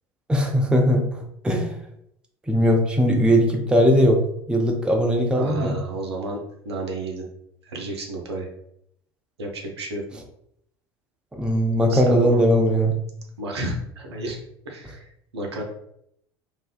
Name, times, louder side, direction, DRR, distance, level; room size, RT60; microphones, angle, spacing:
voice 1, 0.3-1.8 2.5-4.2 4.5-5.8 11.3-13.0, equal, 5° right, 2 dB, 0.4 m, -19 dB
voice 2, 5.4-6.4 6.6-7.2 7.6-8.5 9.4-10.0 11.9-12.4 13.4-14.4 14.7-15.6, right 2 dB, 80° right, 0 dB, 0.5 m, -31 dB
2.5 x 2.2 x 2.3 m, 0.72 s
figure-of-eight pair, 70°, 14 cm